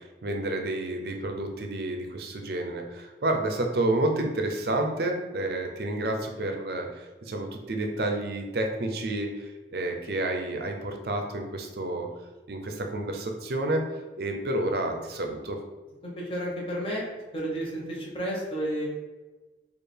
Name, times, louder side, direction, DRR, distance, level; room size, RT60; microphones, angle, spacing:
voice 1, 0.2-12.1 12.5-13.9 14.2-15.6, right 1 dB, 60° right, 3 dB, 0.5 m, -30 dB
voice 2, 16.0-17.0 17.3-18.9, equal, 30° left, -4 dB, 0.9 m, -31 dB
4.4 x 2.4 x 3.3 m, 1.2 s
head